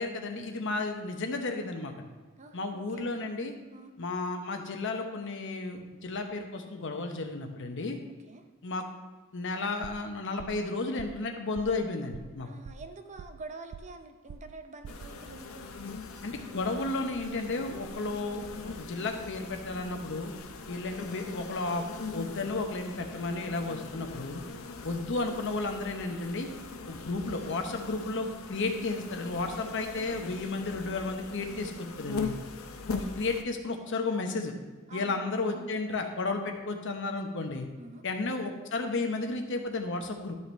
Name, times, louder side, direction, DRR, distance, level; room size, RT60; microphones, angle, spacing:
voice 1, 0.0-2.1 2.5-3.5 4.0-8.0 8.6-8.8 9.3-12.5 16.2-20.3 20.7-21.8 22.1-24.4 24.8-26.5 26.9-31.7 32.0-32.3 33.1-34.5 34.9-37.7 38.0-40.3, left 3 dB, 60° left, 4 dB, 1.0 m, -33 dB
voice 2, 2.4-3.1 3.7-4.0 8.3-8.5 12.4-15.7 34.9-35.8 37.8-38.0, right 3 dB, 35° right, 6 dB, 0.7 m, -47 dB
sound 1, 9.8-10.1 10.4-10.7 11.0-11.3 11.5-11.8 12.1-12.4 12.6-13.5 13.7-14.0 14.3-14.6 14.8-15.1, right 7 dB, 70° right, 0.3 m, -46 dB
sound 2, 14.9-33.4, left 4 dB, 80° left, 0.7 m, -41 dB
12.0 x 5.6 x 3.3 m, 1.3 s
head